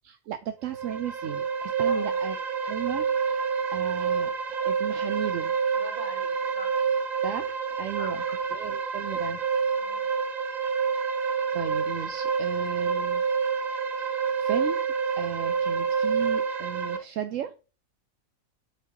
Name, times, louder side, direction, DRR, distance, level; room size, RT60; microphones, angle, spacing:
voice 1, 0.0-2.4 2.7-4.3 4.6-5.5 7.2-8.2 8.5-9.4 11.5-13.2 14.0-14.8 15.2-17.5, right 10 dB, 75° right, 0.9 m, -35 dB
sound 1, 0.6-17.0, right 6 dB, 40° right, 0.7 m, -28 dB
voice 2, 1.8-2.2 5.7-6.8 8.0-8.4 9.8-10.1, equal, 25° right, 2.7 m, -43 dB
8.9 x 4.7 x 2.9 m
omnidirectional pair, 1.4 m